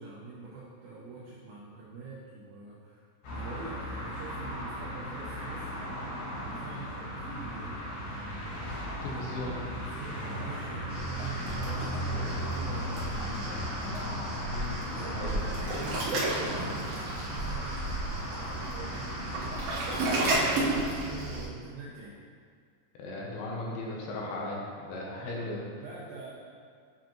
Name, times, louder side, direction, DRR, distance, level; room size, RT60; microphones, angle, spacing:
voice 1, 0.0-5.8 6.4-8.1 9.0-9.4 9.7-13.6 14.7-19.6 20.4-22.2 25.2-26.3, right 3 dB, 85° right, -6 dB, 2.1 m, -45 dB
sound 1, 3.2-20.3, equal, 55° left, 2.5 m, -37 dB
voice 2, 9.0-9.6 14.5-15.4 23.0-25.6, left 2 dB, 75° left, -2 dB, 2.4 m, -37 dB
Waves surf, 10.9-21.5, right 2 dB, 70° right, 2.5 m, -33 dB
8.1 x 5.0 x 3.0 m, 2.1 s
omnidirectional pair, 5.0 m